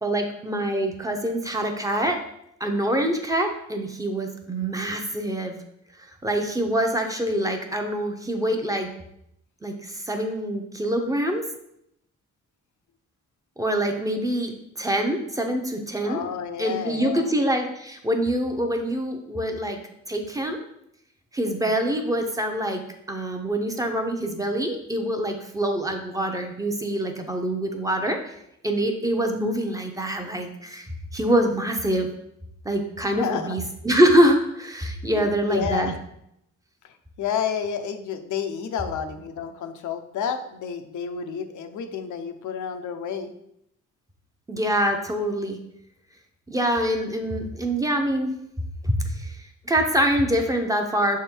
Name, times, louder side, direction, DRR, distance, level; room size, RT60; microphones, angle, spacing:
voice 1, 0.0-2.2 2.6-5.6 6.0-8.9 9.6-11.4 13.6-16.2 16.6-19.8 20.1-20.6 21.3-22.8 23.1-28.4 28.6-32.1 32.6-35.9 44.5-45.6 46.5-48.3 48.8-51.2, right 1 dB, 10° right, 3 dB, 0.6 m, -25 dB
voice 2, 16.0-17.3 33.1-33.6 35.1-36.0 36.8-43.3, left 7 dB, 90° left, 6 dB, 0.7 m, -30 dB
6.1 x 3.6 x 4.4 m, 0.77 s
cardioid pair, 145°, 29 cm